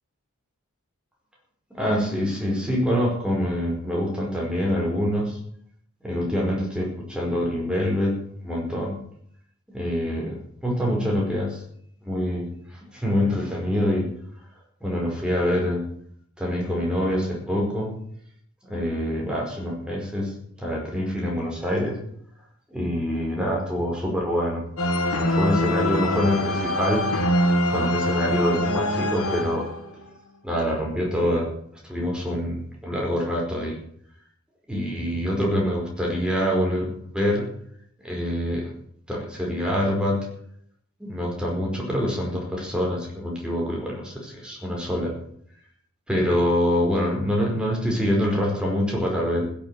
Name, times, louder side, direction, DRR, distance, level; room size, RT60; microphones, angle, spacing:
voice 1, 1.7-5.4 6.0-9.0 9.7-11.6 12.0-12.5 12.9-14.1 14.8-15.9 16.4-17.9 18.6-22.0 22.7-24.6 25.1-27.1 27.7-29.7 30.4-31.5 31.8-33.8 34.7-36.9 37.1-37.5 38.0-38.7 39.1-40.3 41.0-45.2 46.1-49.4, equal, 5° right, -2 dB, 4.9 m, -25 dB
sound 1, 24.8-30.0, left 1 dB, 80° left, 2.6 m, -24 dB
16.0 x 7.6 x 8.9 m, 0.65 s
head